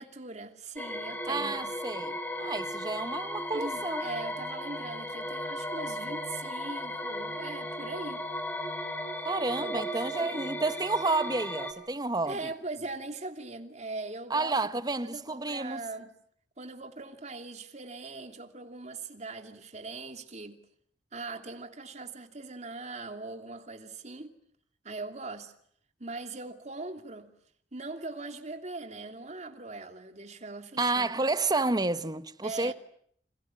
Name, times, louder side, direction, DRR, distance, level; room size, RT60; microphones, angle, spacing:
voice 1, 0.0-1.7 3.5-8.2 9.6-9.8 10.1-10.6 12.3-16.1 16.6-20.6 21.1-24.3 24.8-25.5 26.0-27.3 27.7-31.1 32.4-32.7, right 3 dB, 40° right, 2.8 m, -41 dB
sound 1, 0.8-11.7, equal, 10° left, 3.6 m, -36 dB
voice 2, 1.3-4.1 9.2-12.5 14.3-15.8 30.8-32.7, right 3 dB, 20° right, 1.1 m, -30 dB
29.5 x 27.0 x 7.4 m
head